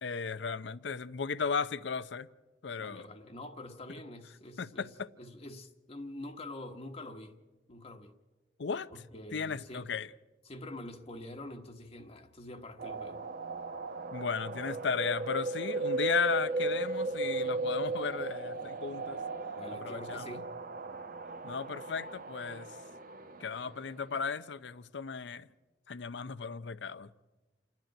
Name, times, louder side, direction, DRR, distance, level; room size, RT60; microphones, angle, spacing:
voice 1, 0.0-2.3 2.6-3.1 4.6-5.1 8.6-8.9 9.3-10.1 14.1-19.2 19.8-20.3 21.4-22.7 23.4-25.5 25.9-27.1, left 5 dB, 75° left, 0.6 m, -35 dB
voice 2, 2.8-7.4 7.7-8.1 8.9-9.9 10.4-13.2 19.6-20.5, left 1 dB, 35° left, 1.2 m, -46 dB
sound 1, 12.8-24.0, right 3 dB, 50° right, 0.9 m, -36 dB
28.0 x 10.5 x 9.1 m
head